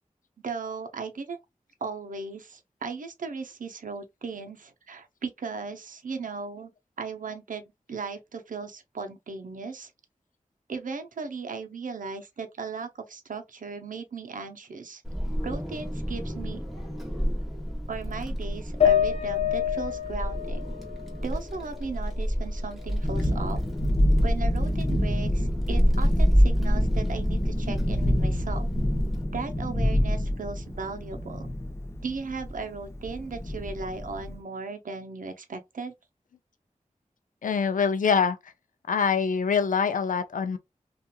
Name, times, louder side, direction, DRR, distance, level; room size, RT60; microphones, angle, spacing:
voice 1, 0.4-1.4 1.8-6.7 7.0-7.6 7.9-9.9 10.7-15.0 15.4-16.6 17.9-20.7 21.2-23.6 24.2-28.7 29.3-31.5 32.0-35.9, right 4 dB, 80° right, 0.6 m, -37 dB
Wind, 15.0-29.2, equal, ahead, 1.1 m, -28 dB
sound 1, 18.8-22.2 22.6-23.6, left 10 dB, 50° left, 0.7 m, -28 dB
Thunderstorm, 22.8-34.4, left 1 dB, 20° left, 0.6 m, -28 dB
voice 2, 37.4-38.4 38.9-40.6, left 6 dB, 85° left, 0.5 m, -24 dB
2.8 x 2.4 x 2.2 m
cardioid pair, 50°, 13 cm